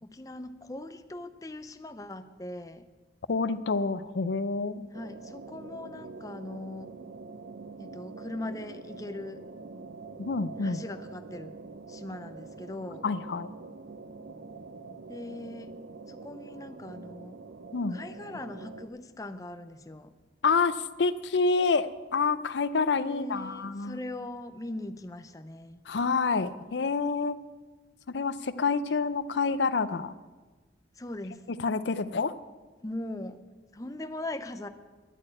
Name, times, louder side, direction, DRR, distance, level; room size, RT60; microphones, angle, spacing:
voice 1, 0.0-2.9 4.9-6.9 7.8-9.4 10.6-11.6 11.9-13.1 15.1-15.7 16.1-17.4 17.9-20.1 23.0-25.8 30.9-31.4 32.8-33.4 33.7-34.7, left 1 dB, 20° left, 9 dB, 0.6 m, -40 dB
voice 2, 3.3-4.9 10.2-10.8 13.0-13.5 17.7-18.0 20.4-24.0 25.9-27.4 28.1-30.1 31.6-32.3, left 4 dB, 85° left, 14 dB, 0.6 m, -28 dB
sound 1, 4.9-18.9, right 3 dB, 80° right, 0.7 m, -45 dB
11.0 x 8.5 x 8.9 m, 1.3 s
head